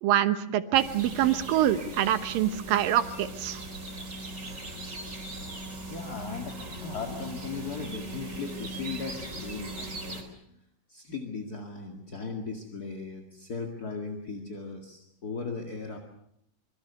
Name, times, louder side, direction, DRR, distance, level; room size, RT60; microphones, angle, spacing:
voice 1, 0.0-3.6, right 11 dB, 75° right, 11 dB, 2.7 m, -25 dB
sound 1, 0.7-10.2, right 1 dB, 20° right, 4.1 m, -39 dB
voice 2, 5.9-10.2 10.9-16.0, left 4 dB, 35° left, 3 dB, 1.9 m, -37 dB
25.0 x 24.0 x 6.8 m, 0.75 s
omnidirectional pair, 4.2 m